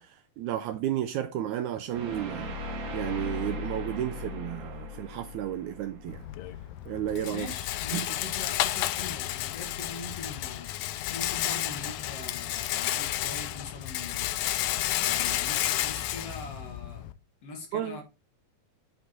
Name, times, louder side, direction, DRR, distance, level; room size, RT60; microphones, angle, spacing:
voice 1, 0.0-2.5 2.9-6.2 6.9-7.5 7.9-8.1 17.7-18.0, right 12 dB, 80° right, 1.7 m, -32 dB
sound 1, 1.9-7.0, left 2 dB, 60° right, 2.6 m, -38 dB
Rattle, 6.1-17.1, left 14 dB, 80° left, 1.7 m, -31 dB
voice 2, 7.2-17.1 17.4-18.0, left 3 dB, 55° left, 2.2 m, -42 dB
8.0 x 4.4 x 4.3 m
omnidirectional pair, 3.8 m